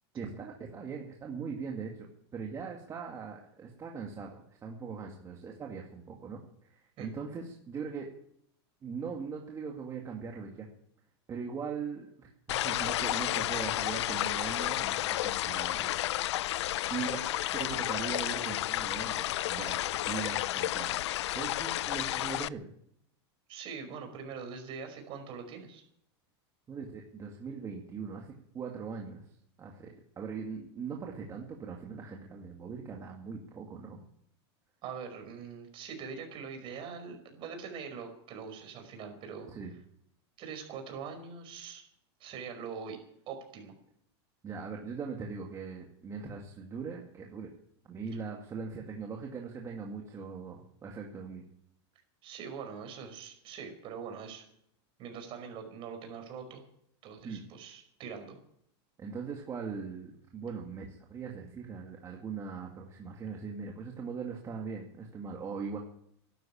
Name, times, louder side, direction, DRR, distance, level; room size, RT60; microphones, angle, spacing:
voice 1, 0.1-2.1 2.3-8.1 8.8-10.7 11.3-16.4 16.9-17.2 17.5-21.0 21.3-22.7 26.7-28.3 28.5-29.2 29.6-34.0 39.5-39.7 44.4-47.5 47.8-51.4 57.2-57.4 59.0-65.8, right 5 dB, 20° right, 0 dB, 2.2 m, -40 dB
sound 1, 12.5-22.5, left 14 dB, 80° left, 0.5 m, -32 dB
voice 2, 23.5-25.8 34.8-39.5 40.4-41.8 42.2-43.0 43.3-43.8 52.2-54.4 55.0-56.6 57.0-58.4, right 6 dB, 40° right, 5 dB, 5.2 m, -43 dB
13.5 x 12.0 x 8.7 m, 0.70 s
supercardioid pair, 145°, 14 cm